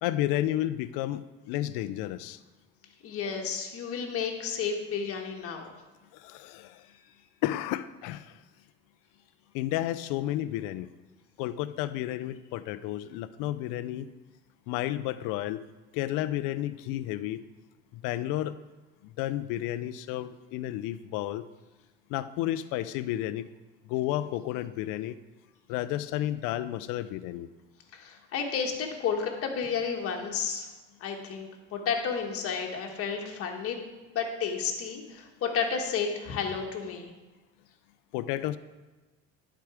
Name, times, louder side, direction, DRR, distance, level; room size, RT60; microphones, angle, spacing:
voice 1, 0.0-2.4 6.1-6.8 7.4-8.4 9.5-10.9 11.4-14.1 14.7-15.6 15.9-17.4 17.9-18.6 19.0-21.4 22.1-23.5 23.9-25.2 25.7-27.5 38.1-38.6, left 14 dB, 75° left, 13 dB, 0.5 m, -32 dB
voice 2, 3.0-5.6 27.9-30.7 31.0-33.8 34.1-37.1, left 6 dB, 45° left, 2 dB, 1.3 m, -32 dB
10.5 x 4.7 x 4.8 m, 1.2 s
cardioid pair, 135°, 32 cm